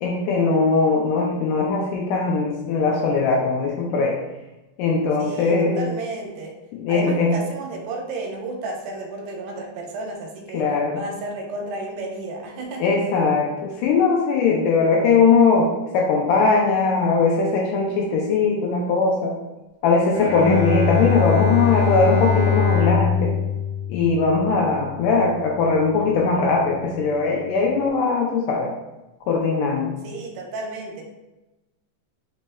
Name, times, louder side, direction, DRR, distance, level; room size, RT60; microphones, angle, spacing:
voice 1, 0.0-4.1 4.8-5.9 6.7-7.4 10.5-11.0 12.8-19.3 19.8-23.3 23.9-28.7 29.3-30.0, left 4 dB, 80° left, -1 dB, 1.9 m, -20 dB
voice 2, 5.2-6.5 6.9-10.7 10.9-12.9 30.0-31.0, right 2 dB, 85° right, 1 dB, 2.4 m, -32 dB
Bowed string instrument, 20.1-25.4, left 6 dB, 70° right, 0.8 m, -23 dB
5.1 x 4.1 x 2.2 m, 1.0 s
omnidirectional pair, 4.2 m